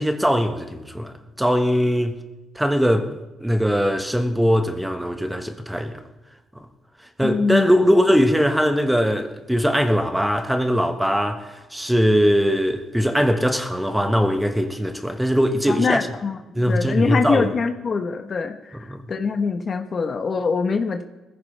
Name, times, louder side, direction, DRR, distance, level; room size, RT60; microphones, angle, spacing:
voice 1, 0.0-2.2 2.5-5.9 6.5-6.7 7.2-16.1 16.5-17.5 18.9-19.0, equal, 5° right, 1.5 m, -21 dB
voice 2, 7.2-7.9 15.7-21.0, left 5 dB, 45° left, 1.2 m, -24 dB
20.5 x 15.0 x 3.4 m
cardioid pair, 90°, 0 cm